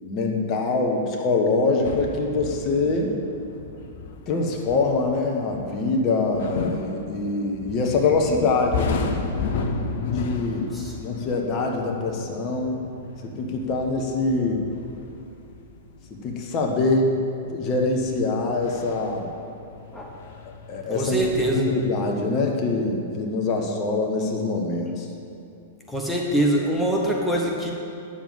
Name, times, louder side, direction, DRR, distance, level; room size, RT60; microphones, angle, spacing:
voice 1, 0.0-3.1 4.3-9.0 10.0-10.7 11.0-12.8 13.2-14.6 16.2-17.1 17.5-19.3 20.4-21.2 21.5-25.1, left 3 dB, 35° left, 1 dB, 1.5 m, -24 dB
sound 1, 1.8-21.5, left 4 dB, 55° left, 1.0 m, -34 dB
voice 2, 20.9-21.7 25.9-27.7, right 1 dB, 5° left, -1 dB, 1.4 m, -24 dB
9.4 x 7.2 x 7.7 m, 2.6 s
figure-of-eight pair, 105°, 0 cm